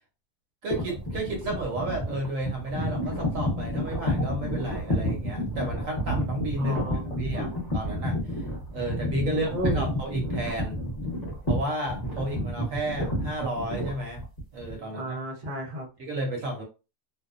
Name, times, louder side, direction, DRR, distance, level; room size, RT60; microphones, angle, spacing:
voice 1, 0.6-6.8 7.2-8.4 8.7-10.8 11.5-14.2 14.5-15.2 16.0-16.6, right 1 dB, 65° right, 1 dB, 1.0 m, -32 dB
sound 1, 0.7-14.8, equal, 30° left, 0.8 m, -30 dB
voice 2, 6.6-7.6 9.2-9.8 14.8-15.9, equal, 45° right, 0 dB, 0.8 m, -34 dB
2.7 x 2.2 x 2.4 m, 0.30 s
omnidirectional pair, 1.6 m